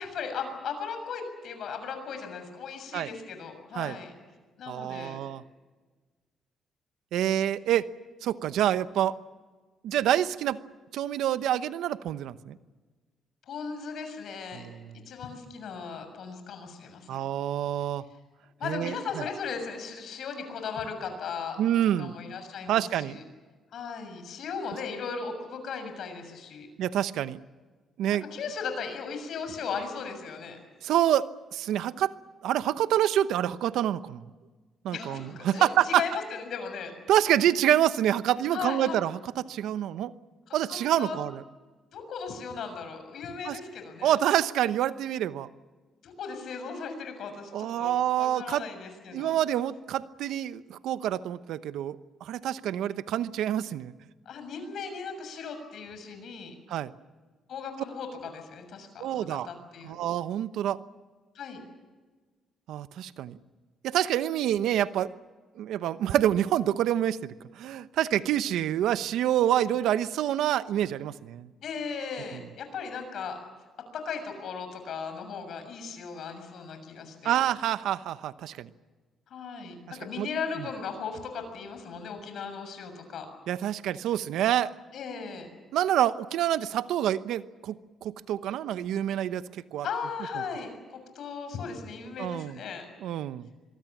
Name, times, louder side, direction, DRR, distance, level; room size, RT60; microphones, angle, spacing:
voice 1, 0.0-4.1 4.6-5.2 13.5-14.7 15.1-17.2 18.6-21.6 22.0-23.2 23.7-26.7 28.1-30.6 34.9-36.9 38.5-39.0 40.5-41.2 41.9-44.1 46.0-49.3 54.2-56.5 57.5-60.0 61.3-61.6 71.6-73.4 73.9-77.4 79.3-83.3 84.9-85.5 89.8-92.8, left 5 dB, 70° left, 7 dB, 6.7 m, -37 dB
voice 2, 4.7-5.4 7.1-7.9 8.2-9.1 9.8-10.6 10.9-12.6 14.5-14.9 17.1-18.0 18.6-19.3 21.6-22.1 22.7-23.2 26.8-27.4 28.0-28.2 30.8-32.1 32.4-34.2 34.8-36.0 37.1-40.1 40.5-41.4 43.4-43.6 44.0-45.5 47.5-48.6 49.1-53.9 56.7-56.9 59.0-59.5 59.8-60.8 62.7-63.4 63.8-65.1 65.6-71.5 72.3-72.4 77.2-78.7 79.9-80.3 83.5-84.7 85.7-89.4 89.7-89.9 92.2-92.6 93.0-93.5, right 11 dB, 85° right, 13 dB, 0.9 m, -27 dB
26.0 x 23.0 x 7.4 m, 1.4 s
cardioid pair, 90°, 0 cm